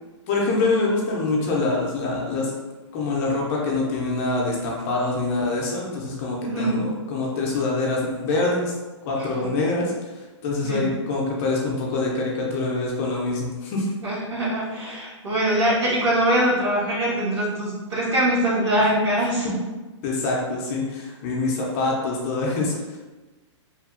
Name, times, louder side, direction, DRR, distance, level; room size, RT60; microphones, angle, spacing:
voice 1, 0.3-2.5 2.9-8.7 9.0-9.9 10.4-13.9 19.4-19.5 20.0-23.0, left 3 dB, 30° left, -2 dB, 0.4 m, -25 dB
voice 2, 6.5-6.8 9.2-9.5 10.6-10.9 14.0-19.6, right 1 dB, 60° right, -7 dB, 1.4 m, -23 dB
2.8 x 2.3 x 2.4 m, 1.2 s
hypercardioid pair, 150°, 16 cm